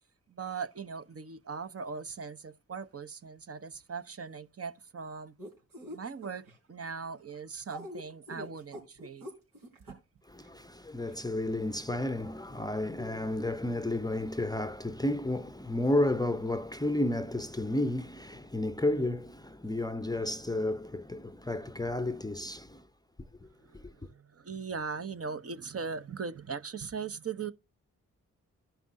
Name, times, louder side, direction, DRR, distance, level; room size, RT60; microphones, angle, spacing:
voice 1, 0.3-5.3 5.9-9.3 9.9-10.0 23.6-27.5, right 5 dB, 45° right, 0.9 m, -39 dB
sound 1, 5.4-6.6 7.6-9.9 10.4-10.5 11.1-11.2, equal, 80° right, 3.7 m, -44 dB
voice 2, 10.3-22.8 23.7-23.9, left 1 dB, 10° left, 0.6 m, -32 dB
14.5 x 5.8 x 2.6 m
cardioid pair, 55°, 34 cm